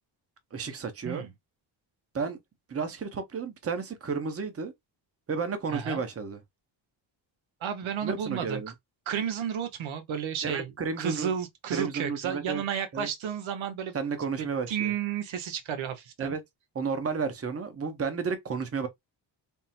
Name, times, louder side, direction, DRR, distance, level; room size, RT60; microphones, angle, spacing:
voice 1, 0.5-1.3 2.1-2.4 2.7-4.7 5.3-6.4 8.0-8.7 10.4-11.3 11.7-12.6 12.9-13.1 13.9-14.9 16.2-16.4 16.7-18.9, right 5 dB, 30° right, 0.8 m, -32 dB
voice 2, 7.6-8.6 9.1-13.9 14.4-16.4, right 8 dB, 80° right, 0.9 m, -32 dB
3.6 x 2.0 x 4.2 m
cardioid pair, 110°, 46 cm